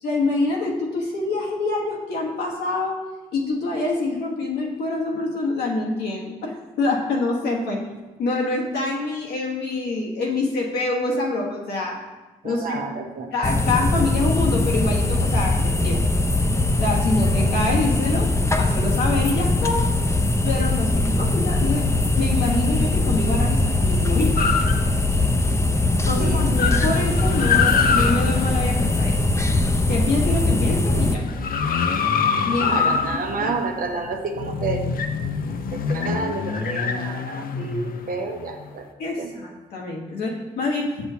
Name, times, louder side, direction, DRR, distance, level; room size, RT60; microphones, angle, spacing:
voice 1, 0.0-3.0 3.3-7.8 8.2-12.0 12.4-12.8 13.3-16.1 16.8-18.3 18.6-19.9 20.4-21.9 22.2-24.4 26.0-29.1 29.9-31.2 32.4-32.8 33.1-33.5 39.0-40.9, left 2 dB, 85° left, -1 dB, 1.2 m, -26 dB
voice 2, 12.4-13.3 26.2-26.4 32.6-34.9 35.7-38.9 39.2-39.3, right 4 dB, 60° right, 4 dB, 0.9 m, -30 dB
sound 1, 13.4-31.1, left 2 dB, 15° left, 0.6 m, -21 dB
sound 2, 24.4-25.4 25.8-25.9 26.1-29.7 30.2-38.7, left 6 dB, 65° left, 0.5 m, -25 dB
6.8 x 6.0 x 2.8 m, 1.1 s
supercardioid pair, 45°, 16 cm